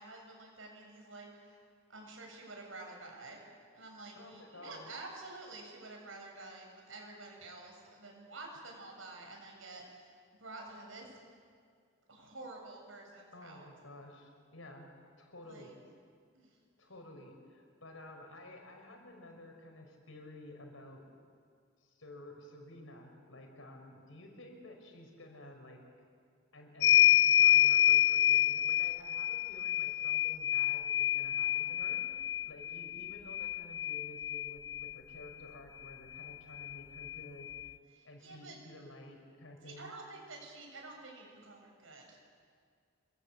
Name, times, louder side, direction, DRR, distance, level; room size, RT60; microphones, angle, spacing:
voice 1, 0.0-1.6 1.9-3.4 3.7-10.1 10.4-11.1 12.1-13.7 15.4-15.7 16.3-16.6 38.2-38.6 39.6-42.2, right 2 dB, 70° right, 1 dB, 7.7 m, -49 dB
voice 2, 4.1-4.9 13.3-14.9 15.2-15.8 16.8-21.1 21.8-25.8 26.5-37.5 38.0-39.9, left 1 dB, 75° left, 3 dB, 5.4 m, -52 dB
sound 1, 26.8-34.9 36.2-36.3 36.6-37.7, left 12 dB, 55° left, 0.6 m, -28 dB
27.0 x 23.5 x 8.4 m, 2.1 s
head